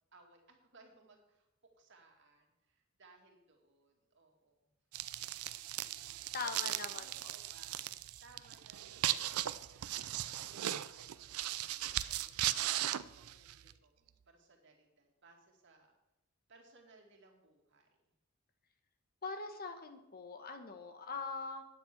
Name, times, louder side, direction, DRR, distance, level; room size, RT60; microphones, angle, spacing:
voice 1, 0.1-1.5 1.7-4.8 6.4-10.1 10.4-16.0 16.5-17.9, right 3 dB, 55° right, 2 dB, 2.2 m, -64 dB
sound 1, 4.9-13.7, right 13 dB, 90° right, 0.5 m, -38 dB
voice 2, 6.3-7.3 19.2-21.6, left 4 dB, 45° left, 7 dB, 1.1 m, -42 dB
9.5 x 7.6 x 7.2 m, 0.93 s
head